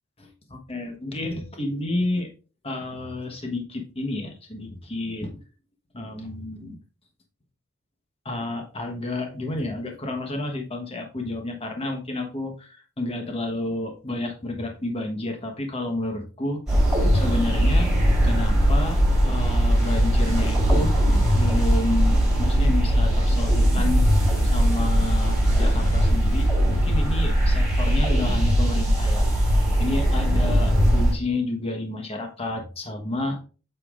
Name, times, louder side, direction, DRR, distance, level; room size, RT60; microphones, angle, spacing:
voice 1, 0.2-2.3 2.6-5.3 5.9-6.8 8.2-16.6 17.1-17.9 18.2-20.9 21.3-24.1 24.4-29.3 29.8-33.4, left 2 dB, 25° left, 3 dB, 1.2 m, -30 dB
sound 1, 16.7-31.1, equal, ahead, 3.7 m, -20 dB
8.3 x 6.9 x 2.5 m, 0.36 s
head